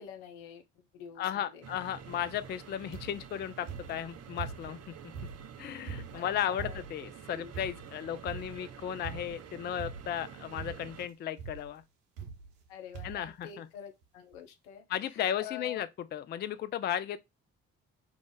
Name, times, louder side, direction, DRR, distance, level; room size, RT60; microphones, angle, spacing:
voice 1, 0.0-1.6 6.1-6.8 7.3-7.5 12.7-15.8, left 8 dB, 75° left, 0.7 m, -47 dB
voice 2, 1.2-4.9 5.6-11.8 13.0-13.7 14.9-17.2, left 10 dB, 30° left, 0.4 m, -35 dB
sound 1, 1.6-11.1, right 8 dB, 45° right, 0.6 m, -49 dB
sound 2, 2.9-3.3 3.7-4.8 5.1-7.1 7.5-8.0 8.3-8.7 9.0-9.5 9.8-10.3 10.6-11.0 11.4-11.7 12.2-12.7 12.9-13.3 14.0-14.1 14.3-14.4, right 6 dB, 80° right, 0.7 m, -43 dB
3.2 x 2.5 x 3.7 m
hypercardioid pair, 45°, 36 cm